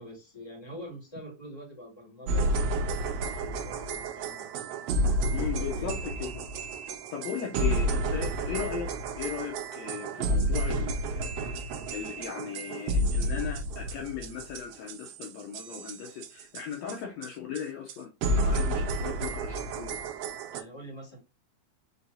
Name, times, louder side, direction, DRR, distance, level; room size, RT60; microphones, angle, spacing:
voice 1, 0.0-4.7 5.5-5.9 20.5-21.2, equal, 10° left, 2.4 m, -45 dB
sound 1, 2.3-17.0 17.2-17.3 17.5-17.6 17.9-18.0 18.2-20.6, right 1 dB, 75° right, 1.4 m, -30 dB
voice 2, 5.3-6.4 7.1-8.9 9.2-11.6 11.9-20.0, left 8 dB, 75° left, 1.9 m, -37 dB
5.4 x 3.4 x 2.7 m
omnidirectional pair, 3.5 m